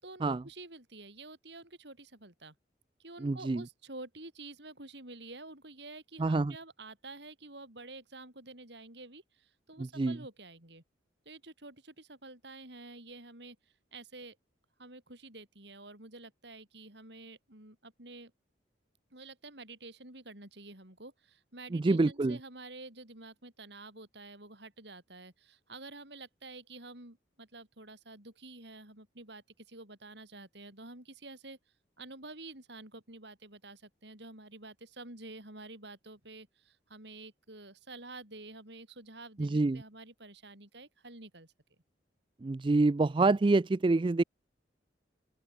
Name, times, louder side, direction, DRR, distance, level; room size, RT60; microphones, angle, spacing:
voice 1, 0.0-2.6 3.0-10.8 11.3-13.6 13.9-14.4 14.8-18.3 19.1-31.6 32.0-41.5, right 2 dB, 65° right, 7.0 m, -49 dB
voice 2, 3.2-3.6 6.2-6.5 10.0-10.2 21.7-22.4 39.4-39.8 42.4-44.2, right 3 dB, 25° right, 0.4 m, -26 dB
open air
head